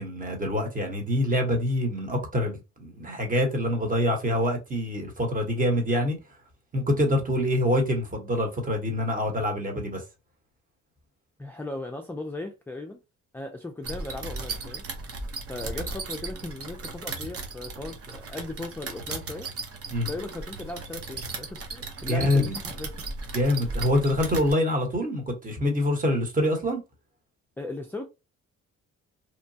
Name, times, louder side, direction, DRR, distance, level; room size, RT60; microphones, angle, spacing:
voice 1, 0.0-6.2 6.7-10.0 19.9-20.1 22.0-22.5 23.3-26.8, left 1 dB, 25° right, 1.1 m, -25 dB
voice 2, 11.4-13.0 13.3-14.8 15.5-19.5 20.1-23.0 27.6-28.1, left 2 dB, 5° left, 0.4 m, -37 dB
sound 1, 13.8-24.5, right 3 dB, 50° right, 0.8 m, -36 dB
2.9 x 2.2 x 2.7 m
cardioid pair, 90°, 30 cm